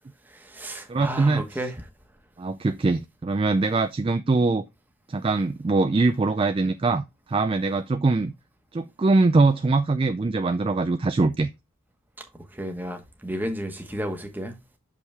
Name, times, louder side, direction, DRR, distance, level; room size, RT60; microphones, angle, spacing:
voice 1, 0.2-1.9 12.5-14.5, right 1 dB, 10° right, 1.1 m, -32 dB
voice 2, 0.9-1.4 2.4-4.6 5.1-8.3 8.7-11.5, right 3 dB, 25° right, 0.3 m, -22 dB
6.3 x 5.4 x 3.4 m
head